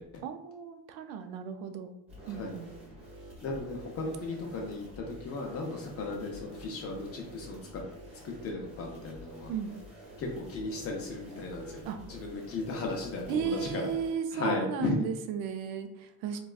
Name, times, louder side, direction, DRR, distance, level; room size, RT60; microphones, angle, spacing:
voice 1, 0.2-2.0 2.3-2.7 9.5-9.8 11.8-12.0 13.3-16.4, right 7 dB, 85° right, 8 dB, 0.5 m, -35 dB
sound 1, 2.1-14.1, equal, 15° right, 0.9 m, -49 dB
voice 2, 3.4-7.8 8.2-9.5 10.2-13.9 14.3-15.0, left 3 dB, 40° left, 0 dB, 0.5 m, -36 dB
4.0 x 2.2 x 2.3 m, 0.85 s
cardioid pair, 175°, 35 cm